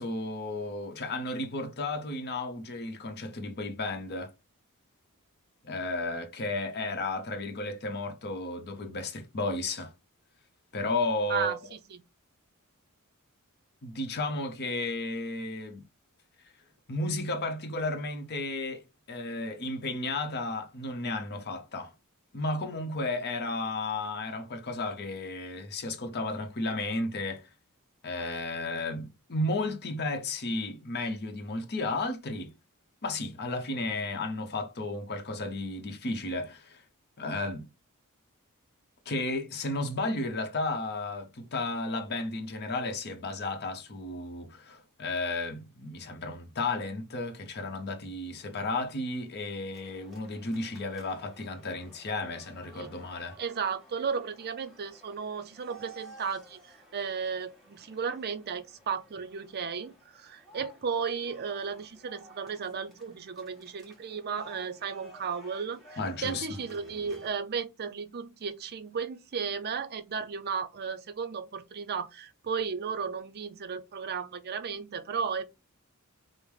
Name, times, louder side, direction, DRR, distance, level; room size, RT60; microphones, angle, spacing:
voice 1, 0.0-4.3 5.6-9.9 10.7-11.6 13.8-15.9 16.9-18.8 19.1-21.9 22.3-27.5 28.0-32.5 33.0-36.8 37.2-37.7 39.1-53.4 66.0-66.5, left 2 dB, 45° left, 0.8 m, -33 dB
voice 2, 11.3-12.0 52.8-52.9 53.4-75.4, right 6 dB, 45° right, 0.5 m, -34 dB
sound 1, 49.7-67.3, right 1 dB, ahead, 1.3 m, -54 dB
5.2 x 2.0 x 3.2 m
head